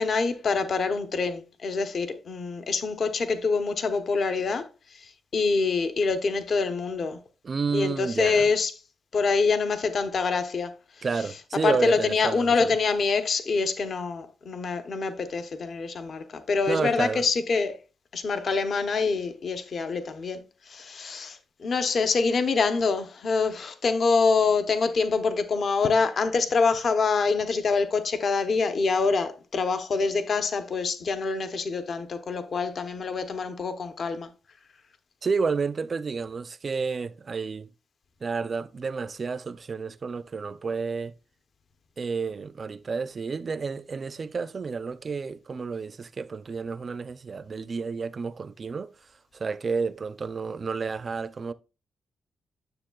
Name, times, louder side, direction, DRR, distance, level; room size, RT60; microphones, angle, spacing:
voice 1, 0.0-4.7 5.0-5.1 5.3-7.2 7.7-8.7 9.1-10.7 11.6-17.7 18.1-20.4 20.7-34.3, left 4 dB, 50° left, 0.8 m, -25 dB
voice 2, 7.4-8.5 11.0-12.8 15.8-15.9 16.7-17.2 35.2-37.7 38.2-41.1 42.0-48.9 49.3-51.5, right 5 dB, 35° right, 0.4 m, -30 dB
9.7 x 7.0 x 2.3 m
cardioid pair, 125°, 0 cm